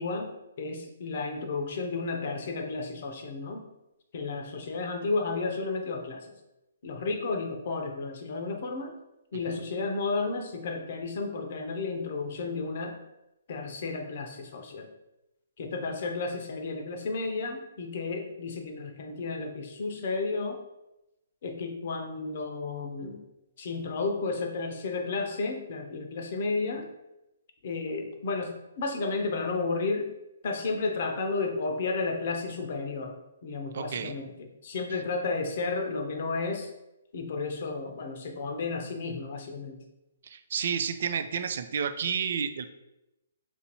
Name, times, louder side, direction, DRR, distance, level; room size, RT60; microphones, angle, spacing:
voice 1, 0.0-3.6 4.1-6.3 6.8-9.0 9.3-13.0 13.5-14.9 15.6-20.6 21.4-23.2 23.6-26.9 27.6-30.1 30.4-33.2 33.4-34.3 34.6-36.7 37.1-39.8, left 3 dB, 50° left, 5 dB, 0.6 m, -32 dB
voice 2, 33.7-34.1 40.2-42.7, right 7 dB, 55° right, 9 dB, 0.3 m, -31 dB
4.3 x 2.6 x 2.9 m, 0.92 s
figure-of-eight pair, 130°, 0 cm